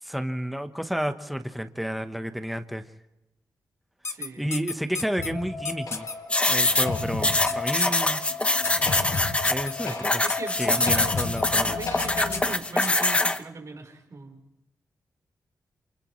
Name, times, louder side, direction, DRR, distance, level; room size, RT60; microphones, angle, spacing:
voice 1, 0.0-2.8 4.4-6.1 6.5-8.2 9.5-10.2 10.6-11.8, equal, ahead, 8 dB, 1.1 m, -31 dB
sound 1, 4.0-5.3 5.6-6.1 6.4-6.7 7.5-8.0 8.6-9.7 10.3-10.9 11.2-11.4 12.0-12.1 12.3-13.1, left 4 dB, 45° left, 1.2 m, -33 dB
voice 2, 4.1-4.5 10.2-11.1 11.5-14.4, right 4 dB, 55° right, 2 dB, 4.2 m, -39 dB
sound 2, 5.2-12.4, left 4 dB, 70° left, 5.5 m, -33 dB
sound 3, 6.3-13.4, left 2 dB, 15° left, 0.8 m, -24 dB
28.5 x 28.0 x 3.2 m, 0.94 s
wide cardioid pair, 100°, 7 cm